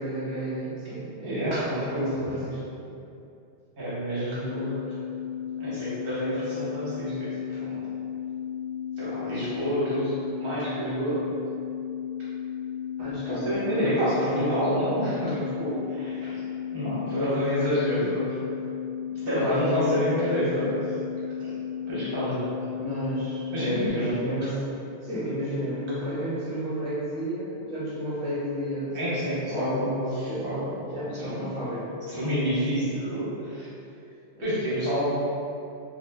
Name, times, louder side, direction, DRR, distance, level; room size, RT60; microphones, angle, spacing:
voice 1, 0.0-2.6 13.0-14.5 17.1-17.4 19.1-20.0 20.3-20.7 22.7-23.4 23.9-29.9 30.2-32.0 34.3-34.4, equal, 15° right, -11 dB, 0.7 m, -32 dB
voice 2, 1.2-2.2 3.8-4.8 5.6-7.9 9.0-11.2 13.3-16.4 16.7-18.4 19.3-20.8 21.4-21.5 21.9-22.4 23.5-24.2 28.9-30.7 31.1-31.5 32.1-33.6 34.4-35.1, equal, 60° right, -10 dB, 0.9 m, -28 dB
sound 1, 4.4-23.9, left 9 dB, 80° left, 0.9 m, -34 dB
2.6 x 2.0 x 3.1 m, 2.6 s
omnidirectional pair, 1.1 m